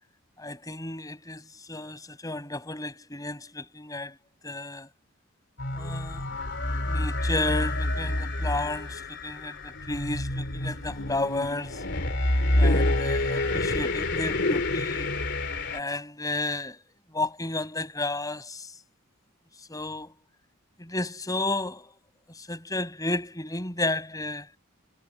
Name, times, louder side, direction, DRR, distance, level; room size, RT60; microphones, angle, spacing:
voice 1, 0.4-1.4 1.7-4.1 4.4-4.9 5.8-6.2 6.8-11.8 12.6-15.1 15.7-16.8 17.1-18.7 19.7-20.1 20.8-21.9 22.4-24.5, left 2 dB, 15° left, 7.4 m, -32 dB
sound 1, 5.6-15.8, left 1 dB, 55° left, 3.0 m, -28 dB
head